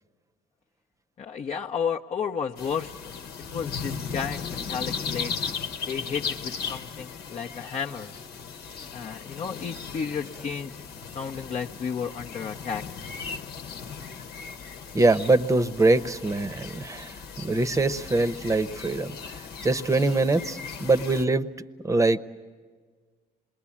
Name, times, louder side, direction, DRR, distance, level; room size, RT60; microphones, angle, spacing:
voice 1, 1.2-3.0 3.5-5.3 5.9-8.1 8.9-10.7 11.1-12.8, left 6 dB, 40° left, 1 dB, 0.8 m, -32 dB
sound 1, 2.6-21.2, left 6 dB, 75° left, 1.2 m, -37 dB
voice 2, 14.9-19.1 19.6-21.5 21.8-22.2, right 2 dB, 20° right, 12 dB, 0.9 m, -23 dB
27.5 x 21.0 x 8.6 m, 1.5 s
cardioid pair, 110°, 17 cm